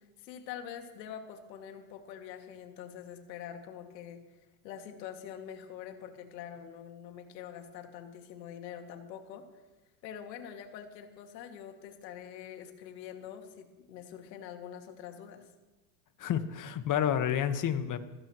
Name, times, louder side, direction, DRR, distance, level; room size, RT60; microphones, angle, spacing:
voice 1, 0.2-4.2 4.6-9.4 10.0-15.4, left 9 dB, 80° left, 4 dB, 2.5 m, -45 dB
voice 2, 16.2-18.0, left 9 dB, 40° left, 9 dB, 1.5 m, -29 dB
27.5 x 15.5 x 3.2 m, 1.2 s
hypercardioid pair, 95°, 50 cm